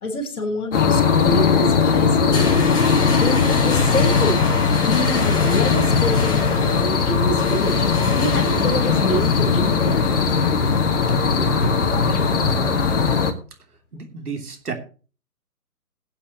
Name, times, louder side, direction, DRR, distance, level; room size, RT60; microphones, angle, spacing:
voice 1, 0.0-2.6 3.1-4.5 4.8-7.9 8.2-10.0, left 1 dB, 65° left, 5 dB, 3.7 m, -26 dB
sound 1, 0.7-13.3, left 5 dB, 50° left, 2.0 m, -19 dB
sound 2, 2.1-13.1, left 2 dB, 10° left, 3.7 m, -33 dB
voice 2, 11.1-13.0 13.9-14.7, right 6 dB, 70° right, 4 dB, 3.2 m, -34 dB
21.5 x 8.4 x 3.0 m, 0.37 s
figure-of-eight pair, 150°, 47 cm